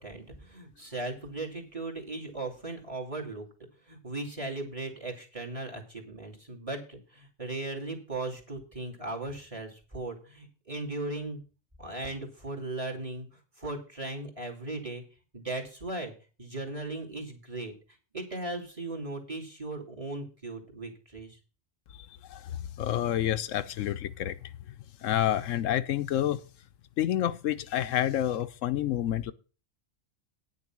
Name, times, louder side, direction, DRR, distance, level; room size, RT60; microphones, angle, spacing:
voice 1, 0.0-3.5 3.9-11.4 11.8-13.3 13.6-15.0 15.3-16.1 16.4-17.7 18.1-21.4, right 2 dB, 25° right, 2.6 m, -37 dB
voice 2, 22.8-24.4 25.0-26.4 27.0-29.3, left 11 dB, 90° left, 1.0 m, -28 dB
9.6 x 6.7 x 6.0 m
omnidirectional pair, 1.3 m